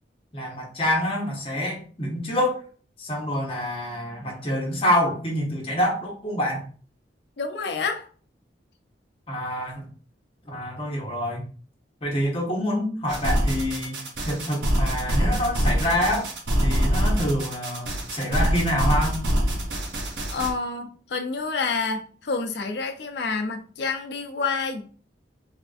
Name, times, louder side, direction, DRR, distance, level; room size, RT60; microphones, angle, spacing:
voice 1, 0.3-2.7 3.0-6.6 9.3-9.9 10.5-11.4 12.0-14.0 14.2-16.3 16.6-19.2, equal, 30° left, -3 dB, 0.9 m, -26 dB
voice 2, 7.4-8.1 20.3-24.8, left 4 dB, 65° left, 6 dB, 0.5 m, -28 dB
sound 1, 13.1-20.5, equal, 75° right, 0.8 m, -25 dB
3.4 x 2.5 x 2.4 m, 0.41 s
head